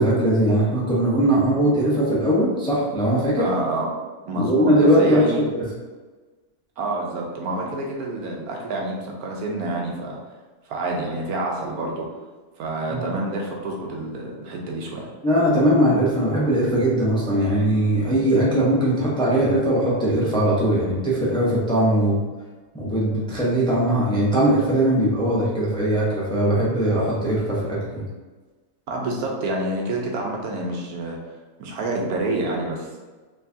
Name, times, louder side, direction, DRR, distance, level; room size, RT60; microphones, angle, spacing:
voice 1, 0.0-3.5 4.3-5.5 12.9-13.0 15.2-22.2 22.7-28.0, right 1 dB, 5° left, -6 dB, 0.7 m, -20 dB
voice 2, 3.4-3.9 4.3-5.4 6.8-10.2 10.7-12.1 12.6-15.1 28.9-31.2 31.6-33.0, right 2 dB, 75° right, -1 dB, 1.2 m, -28 dB
4.5 x 3.2 x 2.7 m, 1.3 s
omnidirectional pair, 1.6 m